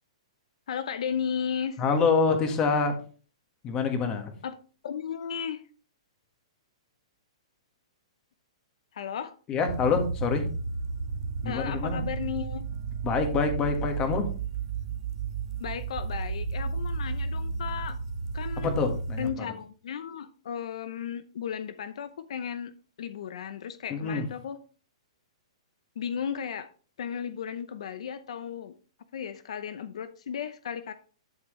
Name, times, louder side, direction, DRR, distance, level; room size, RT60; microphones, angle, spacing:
voice 1, 0.7-1.8 4.4-4.5 4.8-5.7 8.9-9.4 11.4-12.7 15.6-18.0 18.3-18.8 19.2-22.7 23.0-24.6 26.0-26.7 27.0-28.8 29.1-30.9, left 7 dB, 70° left, 12 dB, 0.7 m, -35 dB
voice 2, 1.8-3.0 3.6-4.3 9.5-10.4 11.4-12.0 13.0-14.3 18.6-19.3 23.9-24.2, left 5 dB, 20° left, 5 dB, 1.5 m, -26 dB
sound 1, 9.7-19.3, right 5 dB, 50° right, 1.4 m, -33 dB
11.5 x 6.0 x 3.2 m, 0.39 s
hypercardioid pair, 160°, 3 cm